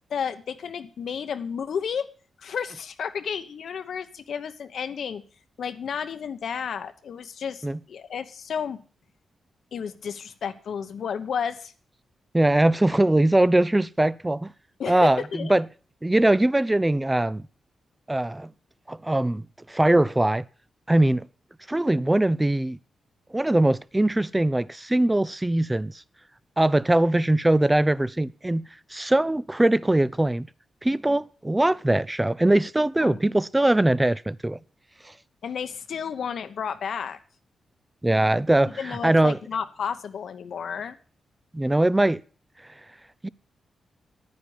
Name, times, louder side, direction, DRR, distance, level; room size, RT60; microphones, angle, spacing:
voice 1, 0.1-2.1 2.4-5.2 5.6-8.8 9.7-11.7 14.8-15.5 33.0-33.2 35.4-37.2 38.8-41.0, left 7 dB, 70° left, 1.0 m, -32 dB
voice 2, 12.3-14.5 14.9-15.7 16.0-17.4 18.1-18.5 18.9-20.4 20.9-21.3 21.7-22.8 23.3-25.9 26.6-28.6 28.9-30.5 30.8-34.6 38.0-39.4 41.5-42.2 43.2-43.3, right 1 dB, 15° right, 0.5 m, -21 dB
10.0 x 9.6 x 7.1 m
cardioid pair, 85°, 0 cm